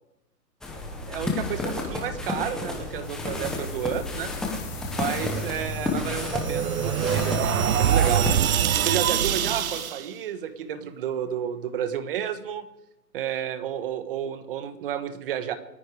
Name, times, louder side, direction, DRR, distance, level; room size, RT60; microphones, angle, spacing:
sound 1, 0.6-8.4, left 2 dB, ahead, 0.8 m, -31 dB
voice 1, 1.1-4.3 4.9-12.7 13.1-15.6, right 9 dB, 35° right, 11 dB, 1.4 m, -31 dB
sound 2, 3.0-9.9, left 10 dB, 20° left, 2.6 m, -44 dB
sound 3, 5.6-10.1, right 9 dB, 55° right, 0.8 m, -24 dB
28.5 x 9.9 x 4.9 m, 0.91 s
hypercardioid pair, 155°, 49 cm